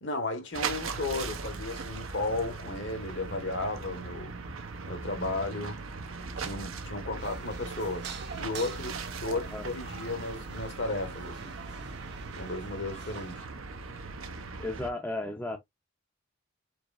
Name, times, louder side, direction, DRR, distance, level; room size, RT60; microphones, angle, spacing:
voice 1, 0.0-4.3 4.8-5.8 6.4-8.1 8.4-11.6 12.4-13.4, left 2 dB, 60° left, 1.3 m, -34 dB
sound 1, 0.5-14.9, right 4 dB, 85° right, 0.8 m, -39 dB
sound 2, 7.1-13.3, right 6 dB, 55° right, 0.8 m, -46 dB
voice 2, 9.3-9.6 14.6-15.6, left 2 dB, 10° left, 0.5 m, -35 dB
4.6 x 3.1 x 2.4 m
head